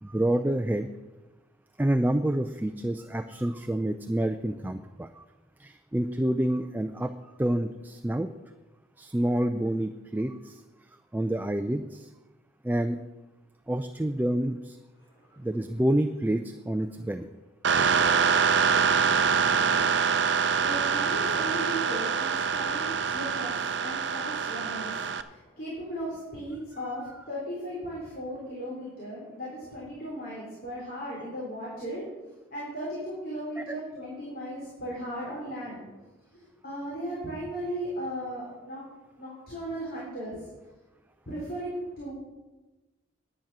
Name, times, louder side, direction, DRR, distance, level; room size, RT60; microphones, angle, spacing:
voice 1, 0.0-0.9 1.8-5.2 5.6-7.1 7.4-8.3 9.0-10.6 11.1-12.1 12.6-13.0 13.7-14.8 15.4-17.3, right 1 dB, 10° right, 8 dB, 0.3 m, -28 dB
voice 2, 15.0-15.7 17.7-32.1 32.5-35.8 36.3-38.8 39.2-40.4 41.3-42.1, equal, 50° left, -6 dB, 3.4 m, -37 dB
sound 1, 17.6-25.2, right 6 dB, 60° right, 0.6 m, -25 dB
10.5 x 8.7 x 6.1 m, 1.1 s
head